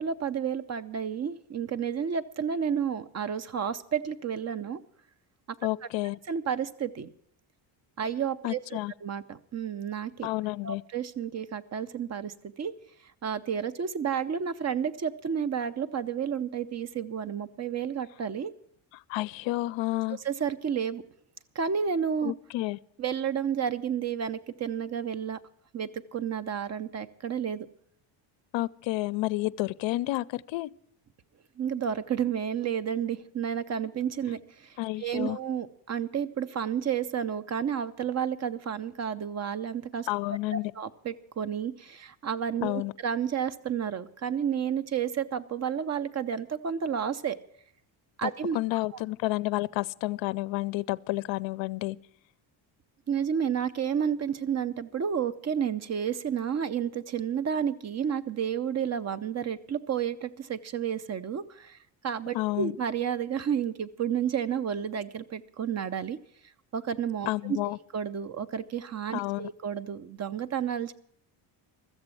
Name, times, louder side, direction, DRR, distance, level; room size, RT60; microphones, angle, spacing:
voice 1, 0.0-4.8 6.3-7.1 8.0-10.3 10.6-12.8 13.2-18.5 20.2-21.0 21.5-22.3 23.0-25.4 25.7-27.7 31.6-40.1 40.5-47.4 48.2-48.6 48.9-49.0 53.1-61.8 62.0-66.2 66.7-67.6 67.9-70.9, right 8 dB, 35° right, 0.7 m, -31 dB
voice 2, 5.6-6.2 8.4-8.9 10.2-10.8 19.1-20.2 22.2-22.8 28.5-30.7 34.8-35.4 40.1-40.7 42.6-42.9 48.2-52.0 62.3-62.7 67.3-67.8 69.1-69.5, left 18 dB, 65° left, 0.5 m, -30 dB
13.5 x 8.0 x 9.0 m
cardioid pair, 125°, 49 cm